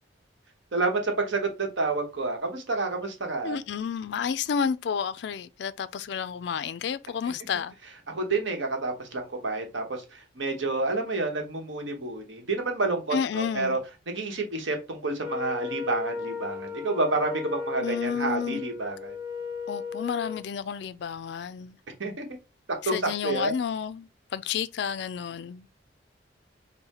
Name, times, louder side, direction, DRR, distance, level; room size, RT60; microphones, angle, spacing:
voice 1, 0.7-3.6 8.1-13.8 14.1-19.2 22.0-22.3 22.9-23.0 23.2-23.5, right 3 dB, 75° right, 1.1 m, -29 dB
voice 2, 3.4-7.8 13.1-13.8 17.8-18.6 19.7-21.8 22.8-25.7, left 7 dB, 60° left, 0.3 m, -31 dB
Wind instrument woodwind instrument, 15.2-20.4, left 5 dB, 10° right, 0.6 m, -35 dB
5.5 x 2.1 x 4.2 m
head